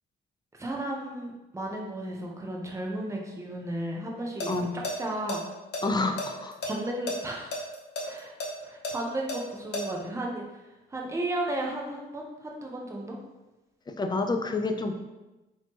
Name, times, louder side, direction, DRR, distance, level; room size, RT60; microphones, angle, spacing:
voice 1, 0.6-4.6 5.0-5.4 6.6-7.6 8.0-8.3 8.6-10.4 10.9-13.2, right 1 dB, 15° right, -1 dB, 0.7 m, -34 dB
sound 1, 4.2-4.5 4.8-4.9 5.3-6.7 7.1-7.2 7.5-9.8, left 2 dB, 60° left, 0.9 m, -32 dB
voice 2, 4.5-4.8 5.8-6.5 13.9-15.0, left 3 dB, 20° left, 6 dB, 0.4 m, -28 dB
4.0 x 3.0 x 2.9 m, 1.1 s
cardioid pair, 90°, 20 cm